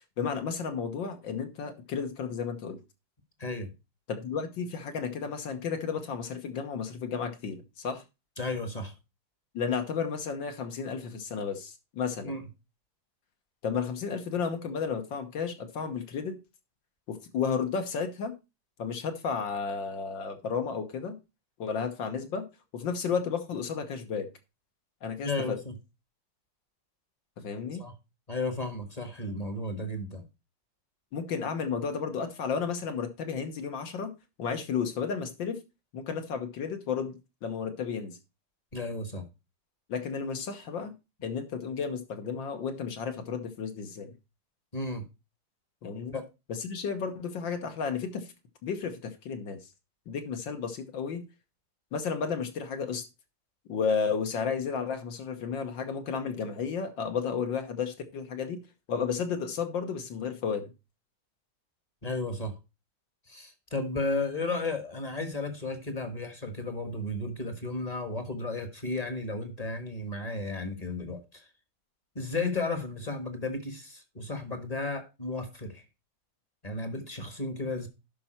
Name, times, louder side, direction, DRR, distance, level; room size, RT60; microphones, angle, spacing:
voice 1, 0.2-2.8 4.1-8.0 9.5-12.4 13.6-16.4 17.1-18.3 18.8-21.2 21.6-22.4 22.7-24.3 25.0-25.6 27.4-27.8 31.1-34.1 34.4-35.6 35.9-38.2 39.9-40.9 41.2-44.1 45.8-46.1 46.5-48.3 48.6-49.6 50.1-51.3 51.9-53.0 53.7-58.6 58.9-60.7, left 6 dB, 65° left, 1.9 m, -32 dB
voice 2, 8.4-8.9 12.2-12.5 25.2-25.7 27.8-27.9 28.3-30.2 38.7-39.2 44.7-45.1 46.1-46.2 62.0-62.5 63.3-71.5 72.1-75.8 76.6-77.9, left 2 dB, 20° left, 1.3 m, -33 dB
12.0 x 5.5 x 4.3 m
omnidirectional pair, 2.3 m